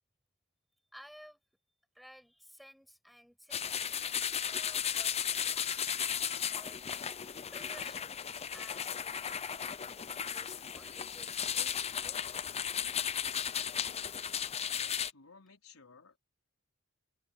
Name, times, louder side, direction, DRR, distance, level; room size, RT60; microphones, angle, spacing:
voice 1, 0.9-1.4 1.9-5.1 6.5-6.8 7.5-8.1 8.5-12.3, equal, ahead, 7.6 m, -56 dB
sound 1, 3.5-15.1, left 8 dB, 30° left, 0.6 m, -35 dB
voice 2, 14.7-16.2, left 5 dB, 80° left, 4.6 m, -57 dB
head